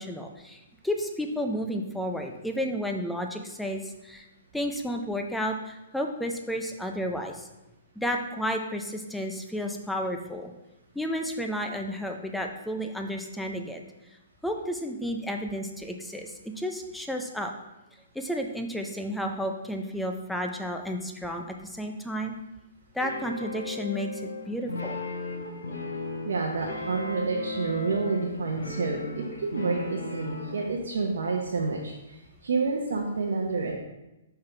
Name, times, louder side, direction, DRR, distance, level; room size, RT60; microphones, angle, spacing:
voice 1, 0.0-4.3 4.5-7.5 8.0-10.5 10.9-13.8 14.4-17.5 18.1-22.3 22.9-25.0, equal, 5° left, 3 dB, 0.6 m, -32 dB
sound 1, 23.0-30.7, left 3 dB, 75° left, 1.4 m, -36 dB
voice 2, 26.2-32.2 32.4-33.7, right 4 dB, 70° right, 0 dB, 0.8 m, -29 dB
5.7 x 5.4 x 3.4 m, 0.97 s
hypercardioid pair, 130°, 0 cm